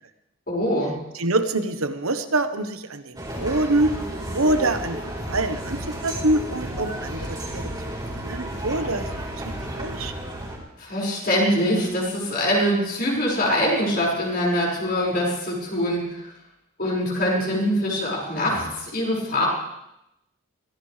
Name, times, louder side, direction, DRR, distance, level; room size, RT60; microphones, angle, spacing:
voice 1, 0.5-1.0 10.8-16.0 16.8-19.5, equal, 45° left, -4 dB, 5.6 m, -23 dB
voice 2, 1.1-3.9 4.3-5.0 5.3-7.7 8.0-9.1 9.4-10.1, right 2 dB, 80° right, 9 dB, 1.2 m, -25 dB
sound 1, 3.1-10.6, right 1 dB, 20° right, 4.3 m, -32 dB
23.5 x 17.0 x 3.4 m, 0.85 s
head